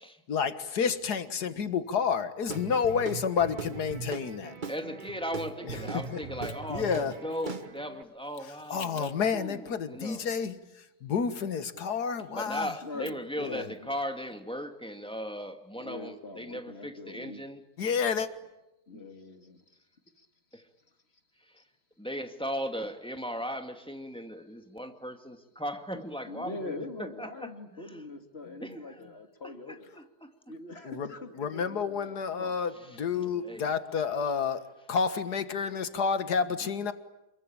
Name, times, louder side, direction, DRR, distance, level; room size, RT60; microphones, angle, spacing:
voice 1, 0.3-4.5 6.7-7.1 8.7-10.6 11.0-12.7 13.4-13.6 17.8-18.3 30.9-31.1 31.4-36.9, left 6 dB, 90° left, 2.0 m, -30 dB
Guitar / Drum, 2.5-8.0, right 4 dB, 35° right, 1.3 m, -40 dB
voice 2, 4.7-10.3 12.3-17.6 18.9-19.0 20.5-20.7 21.4-21.6 22.0-26.7 27.0-28.0 28.6-29.0 29.4-30.3 32.7-33.0 33.4-33.7, equal, 5° left, 2.1 m, -38 dB
voice 3, 12.8-13.9 15.7-17.4 18.9-19.6 20.2-20.3 20.5-20.6 26.3-30.0 30.5-32.7, left 2 dB, 40° left, 2.7 m, -43 dB
28.0 x 22.5 x 8.9 m
omnidirectional pair, 1.7 m